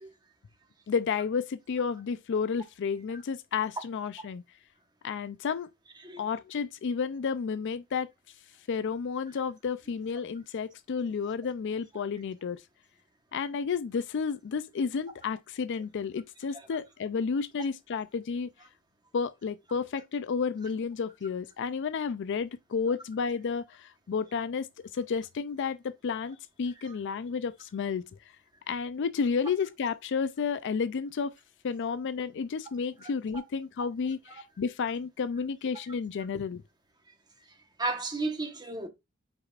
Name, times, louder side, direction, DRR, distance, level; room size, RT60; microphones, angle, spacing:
voice 1, 0.9-4.4 5.0-5.7 6.2-8.1 8.7-12.6 13.3-18.5 19.1-24.7 24.9-28.0 28.7-31.3 31.6-36.6, left 5 dB, 55° left, 0.4 m, -31 dB
voice 2, 37.8-38.9, right 2 dB, 20° right, 1.1 m, -33 dB
8.1 x 4.9 x 2.4 m
head